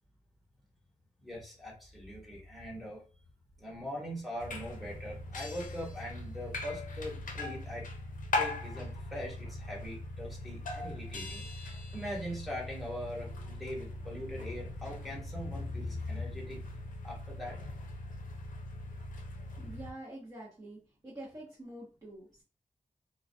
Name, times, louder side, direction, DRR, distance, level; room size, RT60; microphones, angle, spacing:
voice 1, 1.2-3.0 3.6-7.9 8.4-16.7 17.0-17.6, left 1 dB, ahead, -5 dB, 0.9 m, -41 dB
sound 1, 4.4-19.9, left 2 dB, 90° left, 0.5 m, -40 dB
voice 2, 19.6-22.4, right 1 dB, 25° right, -6 dB, 0.7 m, -47 dB
2.2 x 2.2 x 2.5 m, 0.34 s
wide cardioid pair, 140°, 13 cm